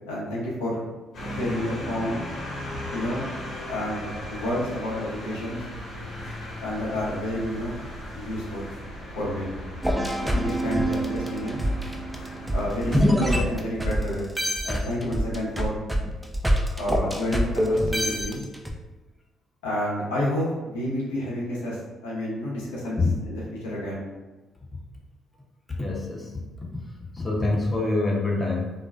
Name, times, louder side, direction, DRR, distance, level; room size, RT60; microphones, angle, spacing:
voice 1, 0.1-0.9 1.3-2.2 2.9-3.2 3.7-5.6 6.6-7.8 8.2-8.6 9.2-9.5 10.2-11.6 12.5-14.3 14.6-15.8 16.8-18.4 19.6-21.8 22.0-24.1, left 1 dB, 90° left, -6 dB, 0.6 m, -29 dB
sound 1, 1.1-13.1, left 1 dB, 60° left, 1.0 m, -37 dB
sound 2, 9.8-14.0 14.4-18.7, equal, 10° right, 0.4 m, -25 dB
voice 2, 25.8-26.7 27.2-28.7, left 2 dB, 25° left, -2 dB, 0.7 m, -26 dB
2.4 x 2.2 x 2.3 m, 1.2 s
hypercardioid pair, 50°, 0 cm